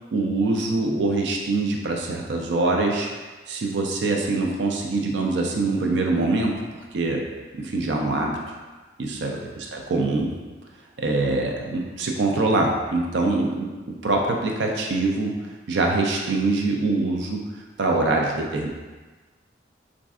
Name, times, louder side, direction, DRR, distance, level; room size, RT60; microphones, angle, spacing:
voice 1, 0.1-3.1 3.5-6.5 6.9-7.2 7.5-8.6 9.0-10.3 11.0-15.3 15.7-17.4 17.8-18.7, right 2 dB, 75° right, 1 dB, 0.4 m, -24 dB
4.0 x 2.5 x 2.3 m, 1.3 s
head